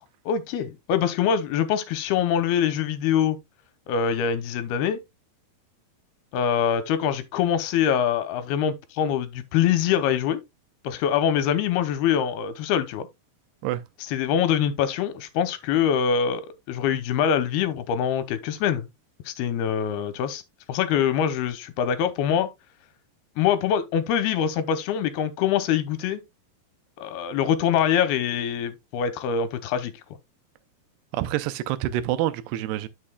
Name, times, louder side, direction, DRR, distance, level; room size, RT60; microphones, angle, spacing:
voice 1, 0.3-3.4 3.9-5.0 6.3-10.4 10.8-13.1 14.1-18.9 19.3-20.4 20.7-22.5 23.4-26.2 27.0-29.9, left 8 dB, 80° left, 2.8 m, -24 dB
voice 2, 31.1-32.9, right 13 dB, 85° right, 2.7 m, -27 dB
11.0 x 6.4 x 2.3 m
omnidirectional pair, 4.7 m